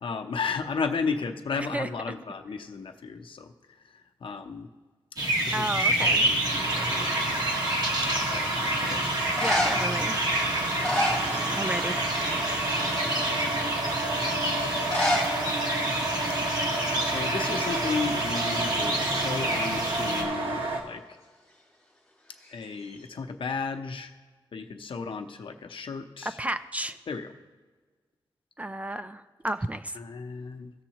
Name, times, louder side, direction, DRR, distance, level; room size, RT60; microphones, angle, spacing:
voice 1, 0.0-4.7 5.5-7.2 8.2-9.0 9.6-10.2 10.8-11.7 12.7-13.1 16.9-21.2 22.5-24.1 24.5-26.4 27.1-27.3 29.9-30.7, left 5 dB, 70° left, 5 dB, 0.7 m, -34 dB
sound 1, 5.2-20.2, right 1 dB, 50° right, 1.5 m, -29 dB
voice 2, 5.5-6.2 9.4-10.1 11.6-12.0 26.4-27.0 28.6-29.8, right 1 dB, 15° right, 10 dB, 0.3 m, -31 dB
sound 2, 6.1-20.8, right 2 dB, 85° right, 1.2 m, -31 dB
sound 3, 9.3-10.0 10.6-11.9 12.1-12.5 13.1-13.2 14.8-15.3 15.6-15.7 15.9-16.0 16.8-17.0 17.3-18.5 22.4-23.1, left 1 dB, 5° left, 2.8 m, -30 dB
16.5 x 7.1 x 2.9 m, 1.4 s
wide cardioid pair, 135°, 9 cm